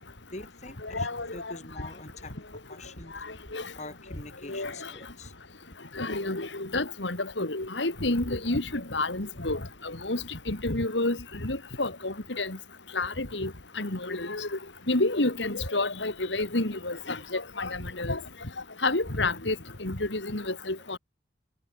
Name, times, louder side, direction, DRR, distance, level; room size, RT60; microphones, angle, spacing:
voice 1, 0.3-3.2 3.8-5.3, left 2 dB, 40° left, 5.3 m, -44 dB
voice 2, 0.8-1.5 3.5-3.6 4.5-4.7 6.0-12.6 12.9-13.5 13.8-14.5 14.9-18.2 18.8-19.5 19.8-21.0, left 2 dB, 80° left, 3.1 m, -29 dB
head